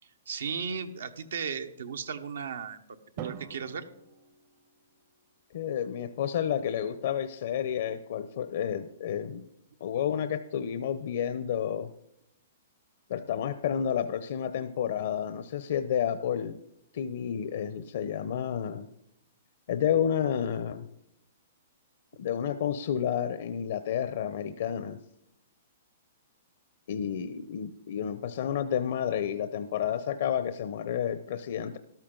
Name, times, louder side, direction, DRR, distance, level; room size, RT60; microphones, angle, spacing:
voice 1, 0.3-2.8 3.2-3.9, right 6 dB, 80° right, 8 dB, 1.1 m, -35 dB
Drum, 3.2-5.3, right 9 dB, 45° right, 0.8 m, -45 dB
voice 2, 5.5-9.4 9.8-11.9 13.1-16.6 16.9-18.9 19.7-20.9 22.2-25.0 26.9-31.8, left 9 dB, 65° left, 10 dB, 0.7 m, -30 dB
13.5 x 12.0 x 3.9 m, 0.78 s
hypercardioid pair, 140°, 0 cm